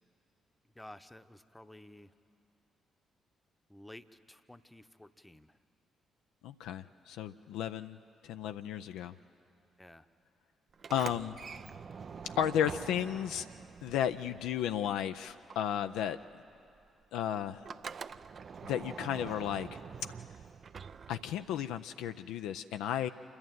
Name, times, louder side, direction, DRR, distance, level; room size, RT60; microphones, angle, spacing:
voice 1, 0.8-2.1 3.7-5.6 9.8-10.1, left 1 dB, 10° left, 11 dB, 0.9 m, -53 dB
voice 2, 6.4-8.0 8.2-9.1 10.9-11.4 12.2-13.5 13.8-16.2 17.1-17.6 18.7-19.8 21.1-23.1, left 10 dB, 70° left, 9 dB, 0.4 m, -34 dB
Sliding door, 10.7-15.0 15.3-21.7, right 6 dB, 50° right, 0.5 m, -46 dB
27.5 x 11.5 x 9.1 m, 2.7 s
hypercardioid pair, 40°, 0 cm